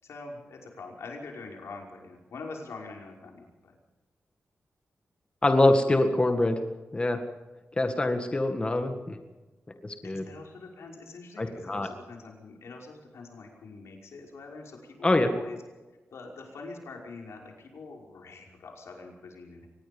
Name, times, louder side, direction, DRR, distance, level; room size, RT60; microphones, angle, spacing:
voice 1, 0.0-3.8 10.0-15.6 16.1-19.7, left 3 dB, 85° left, 0 dB, 5.6 m, -44 dB
voice 2, 5.4-6.6 6.9-7.2 7.8-9.2 9.8-10.2 11.4-11.9 15.0-15.3, left 2 dB, 20° left, 5 dB, 1.9 m, -24 dB
25.0 x 20.0 x 5.4 m, 1.2 s
wide cardioid pair, 130°, 5 cm